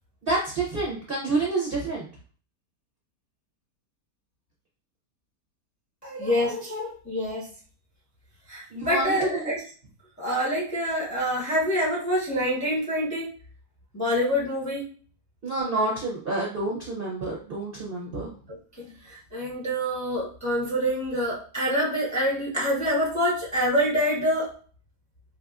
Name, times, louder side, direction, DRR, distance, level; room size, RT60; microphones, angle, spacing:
voice 1, 0.2-2.1 8.7-9.5 15.4-18.3, right 2 dB, 50° right, -3 dB, 0.7 m, -28 dB
voice 2, 6.0-7.5 8.5-9.6 10.2-13.3 13.9-14.9 18.5-24.5, equal, 15° left, -5 dB, 0.6 m, -26 dB
4.0 x 2.5 x 2.3 m, 0.41 s
omnidirectional pair, 1.7 m